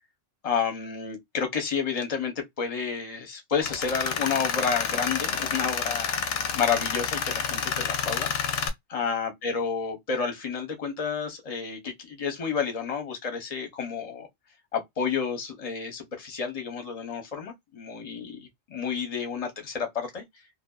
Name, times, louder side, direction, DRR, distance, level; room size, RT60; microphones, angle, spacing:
voice 1, 0.4-6.2 6.5-8.3 8.9-14.3 14.7-20.2, left 6 dB, 35° left, 0.7 m, -30 dB
Tools, 3.6-8.7, left 6 dB, 65° left, 0.7 m, -29 dB
2.6 x 2.2 x 2.2 m
omnidirectional pair, 1.3 m